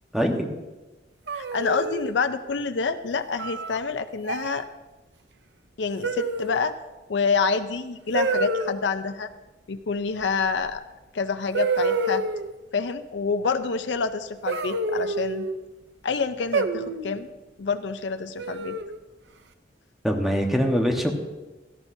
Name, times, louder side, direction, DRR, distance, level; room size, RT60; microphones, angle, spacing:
voice 1, 0.1-0.5 20.0-21.1, equal, ahead, 2 dB, 1.2 m, -23 dB
voice 2, 1.3-4.7 5.8-6.8 7.1-9.3 9.7-10.8 11.1-12.2 12.7-15.5 16.0-17.3 17.6-18.8, left 5 dB, 85° left, 9 dB, 0.5 m, -27 dB
sound 1, 1.3-2.1 3.4-3.8 4.2-4.6 6.0-6.7 8.1-8.7 10.7-10.8 11.5-12.5 14.5-15.5 16.5-17.2 18.4-19.0, right 3 dB, 75° right, 0.7 m, -27 dB
17.5 x 12.0 x 2.7 m, 1.1 s
head